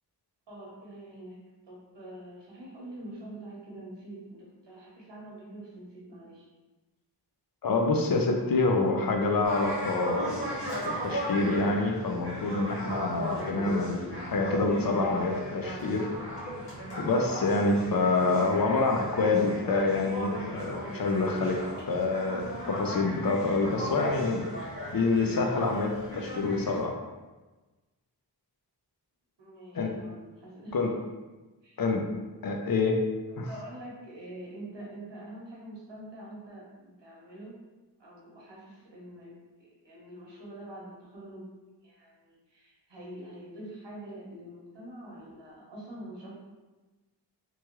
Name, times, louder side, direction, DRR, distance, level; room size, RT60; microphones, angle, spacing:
voice 1, 0.5-1.4 1.7-6.5 29.4-30.9 31.6-31.8 32.3-32.4 33.5-37.5 38.0-39.3 39.6-41.5 41.8-46.3, right 1 dB, 90° right, -5 dB, 1.0 m, -45 dB
voice 2, 7.6-10.5 11.0-16.1 17.0-21.6 21.9-24.5 24.9-27.0 29.7-29.9 30.7-30.9 31.8-32.0 32.4-33.0 33.4-33.5, left 3 dB, 55° left, 2 dB, 0.5 m, -27 dB
sound 1, 9.4-26.8, equal, 75° left, 1.3 m, -36 dB
3.0 x 2.3 x 2.9 m, 1.2 s
wide cardioid pair, 70°, 42 cm